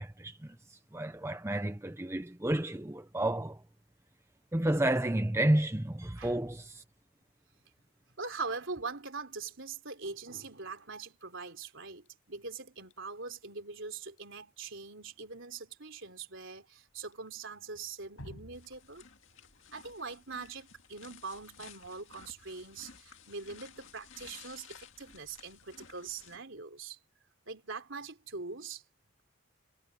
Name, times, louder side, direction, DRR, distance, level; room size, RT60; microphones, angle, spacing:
voice 1, 0.0-3.6 4.5-6.8, right 1 dB, 10° right, 0.6 m, -31 dB
voice 2, 8.2-19.0 19.7-27.0 27.5-28.8, right 4 dB, 60° right, 4.0 m, -42 dB
Drip, 8.6-26.8, left 1 dB, 85° left, 5.1 m, -61 dB
sound 1, 18.5-26.4, left 7 dB, 60° left, 2.3 m, -55 dB
head